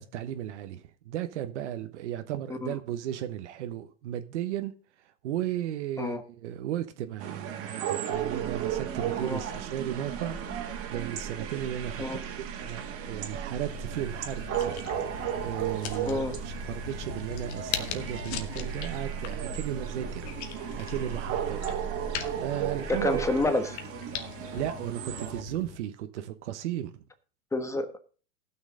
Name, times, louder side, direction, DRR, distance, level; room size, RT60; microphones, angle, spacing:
voice 1, 0.0-4.7 5.2-12.0 12.6-14.7 15.4-20.3 20.8-21.6 22.4-23.3 24.5-27.0, right 11 dB, 70° right, 1.1 m, -35 dB
sound 1, 7.2-25.4, right 10 dB, 40° right, 1.9 m, -35 dB
sound 2, 8.1-23.5, right 5 dB, 30° left, 3.0 m, -41 dB
sound 3, 13.7-25.8, left 9 dB, 60° left, 1.4 m, -41 dB
voice 2, 22.9-23.8 27.5-28.0, left 2 dB, 10° left, 1.2 m, -28 dB
18.0 x 6.3 x 3.7 m
hypercardioid pair, 120°, 37 cm